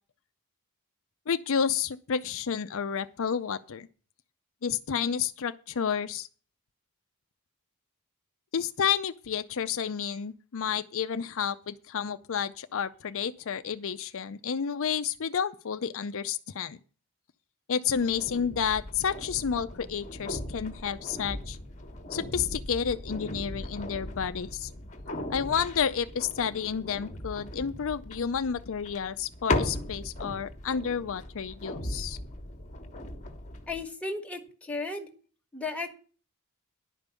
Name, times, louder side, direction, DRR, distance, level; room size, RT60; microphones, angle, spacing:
voice 1, 1.3-3.9 4.6-6.3 8.5-16.8 17.7-21.6 22.1-24.7 25.3-32.2, left 7 dB, 60° left, 0.5 m, -30 dB
sound 1, 17.9-33.8, left 1 dB, 35° left, 1.3 m, -38 dB
voice 2, 33.7-35.1 35.5-35.9, left 3 dB, 5° left, 1.5 m, -34 dB
11.0 x 5.3 x 8.2 m
head